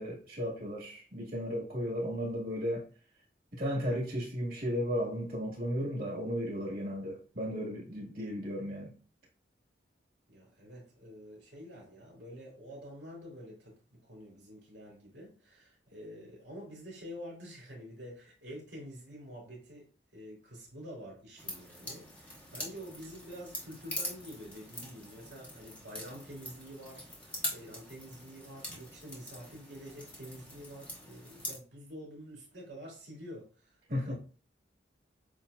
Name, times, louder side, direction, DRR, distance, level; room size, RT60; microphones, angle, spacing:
voice 1, 0.0-2.9 3.5-8.9 33.9-34.1, equal, 50° right, 2.0 m, -34 dB
voice 2, 10.3-19.9 20.1-34.1, equal, 70° right, 2.2 m, -48 dB
sound 1, 21.4-31.6, left 1 dB, 5° left, 0.9 m, -43 dB
7.6 x 2.5 x 2.3 m
head